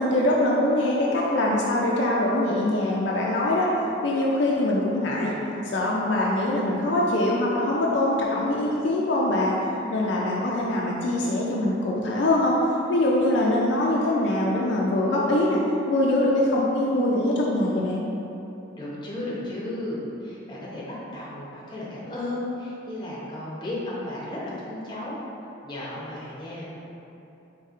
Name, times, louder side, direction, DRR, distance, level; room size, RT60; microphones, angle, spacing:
voice 1, 0.0-3.7 4.0-5.4 5.7-9.6 9.9-12.6 12.9-18.0, left 1 dB, 60° left, -4 dB, 0.4 m, -23 dB
voice 2, 18.8-25.2 25.6-26.8, left 1 dB, 25° left, -7 dB, 0.7 m, -34 dB
4.1 x 3.7 x 2.5 m, 3.0 s
head